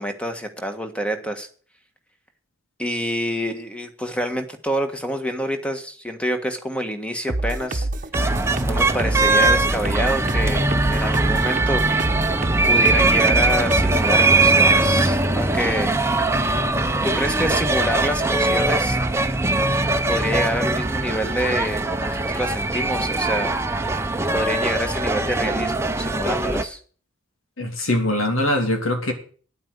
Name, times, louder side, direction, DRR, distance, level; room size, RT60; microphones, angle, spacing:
voice 1, 0.0-1.5 2.8-7.9 8.6-11.9 12.6-15.9 17.0-19.0 20.1-23.6 24.3-26.8, equal, 5° left, 7 dB, 1.4 m, -27 dB
sound 1, 7.3-14.1, right 2 dB, 40° right, 1.0 m, -26 dB
sound 2, 8.1-26.6, right 2 dB, 15° right, 0.8 m, -21 dB
voice 2, 27.6-29.1, left 1 dB, 90° left, 4 dB, 3.0 m, -22 dB
9.7 x 8.8 x 8.0 m, 0.43 s
head